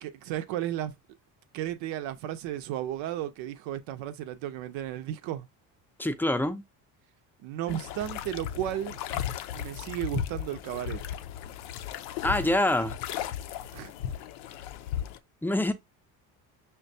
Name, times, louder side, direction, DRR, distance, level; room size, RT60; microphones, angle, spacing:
voice 1, 0.0-0.9 1.5-5.5 7.4-9.0 9.5-11.0 13.7-13.9, right 12 dB, 75° right, 0.7 m, -34 dB
voice 2, 6.0-6.6 12.2-12.9 15.4-15.7, left 1 dB, 5° left, 0.5 m, -25 dB
sound 1, 7.7-15.2, left 10 dB, 80° left, 0.5 m, -36 dB
5.7 x 2.3 x 2.6 m
supercardioid pair, 70°, 46 cm